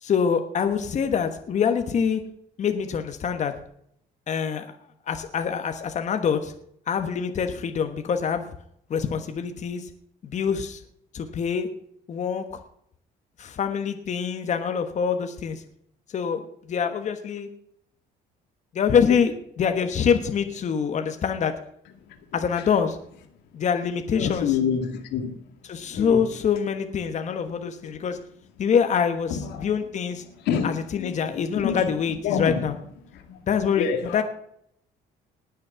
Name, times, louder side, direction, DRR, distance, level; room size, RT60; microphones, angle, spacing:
voice 1, 0.0-2.2 2.6-3.5 4.3-4.7 5.1-6.5 6.9-8.5 8.9-9.9 10.2-10.8 11.1-11.7 12.1-12.6 13.4-15.6 16.1-17.5 18.7-21.5 22.3-23.0 23.5-24.6 25.7-28.2 28.6-30.2 30.6-32.7 33.5-34.2, left 7 dB, 45° left, 1.3 m, -25 dB
voice 2, 24.2-25.4 25.9-26.2 29.3-29.6 30.5-31.9 32.2-32.6 33.3-33.4 33.8-34.2, left 7 dB, 85° left, 2.2 m, -27 dB
19.5 x 6.5 x 5.8 m
cardioid pair, 110°, 17 cm